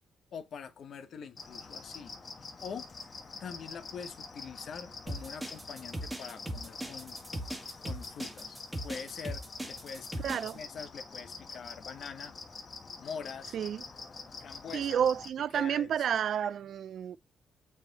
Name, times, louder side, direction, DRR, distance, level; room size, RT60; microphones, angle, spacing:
voice 1, 0.3-2.1 2.6-2.9 3.4-7.2 7.8-12.3 13.0-13.6 14.4-15.0 15.5-15.9, left 6 dB, 60° left, 0.9 m, -44 dB
sound 1, 1.4-15.3, left 4 dB, 35° left, 1.3 m, -46 dB
sound 2, 5.1-10.5, right 1 dB, 5° right, 1.8 m, -39 dB
voice 2, 10.2-10.6 13.5-13.8 14.7-17.2, right 9 dB, 65° right, 0.3 m, -30 dB
6.7 x 3.6 x 4.0 m
cardioid pair, 90°, 0 cm